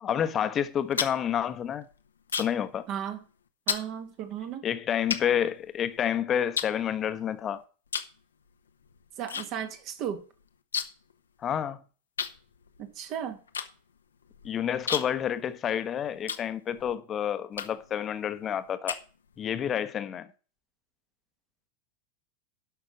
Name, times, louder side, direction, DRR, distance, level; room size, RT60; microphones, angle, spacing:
voice 1, 0.0-1.9 2.4-2.9 4.6-7.6 11.4-11.8 14.4-19.0 19.4-20.3, left 9 dB, 30° left, 1.1 m, -29 dB
sound 1, 0.6-2.7 3.0-3.3 3.7-3.9 4.5-4.6 5.1-6.1 6.5-7.4 7.9-8.2 8.5-9.5 9.7-9.8 10.1-11.1 11.4-11.5 12.2-16.9 17.5-18.0 18.4-19.5, left 7 dB, 75° left, 1.0 m, -34 dB
voice 2, 2.9-3.2 3.7-4.7 9.2-10.2 12.8-13.4, right 9 dB, 40° right, 1.9 m, -35 dB
12.0 x 6.0 x 6.1 m
figure-of-eight pair, 90°, 0 cm